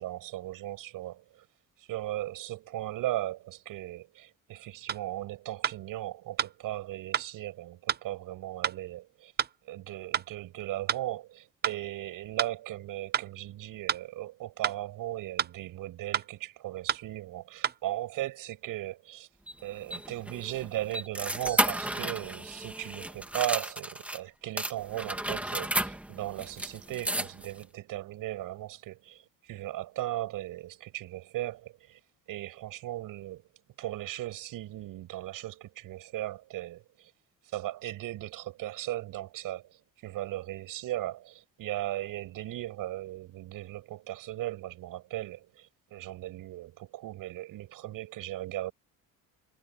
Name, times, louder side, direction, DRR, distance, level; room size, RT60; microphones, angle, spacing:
voice 1, 0.0-1.5 1.8-9.3 9.6-19.3 19.6-32.0 32.3-33.4 33.8-37.1 37.5-48.7, right 15 dB, 75° right, 7.2 m, -37 dB
sound 1, 4.9-5.0 5.6-5.8 6.4-6.5 7.1-7.3 7.9-8.0 8.6-8.8 9.4-9.5 10.1-10.3 10.9-11.0 11.6-11.8 12.4-12.5 13.1-13.3 13.9-14.0 14.6-14.8 15.4-15.6 16.1-16.3 16.9-17.1 17.6-17.8, right 8 dB, 30° right, 0.7 m, -30 dB
sound 2, 19.5-24.2 24.6-27.6, right 1 dB, 5° right, 2.1 m, -33 dB
cardioid pair, 145°, 34 cm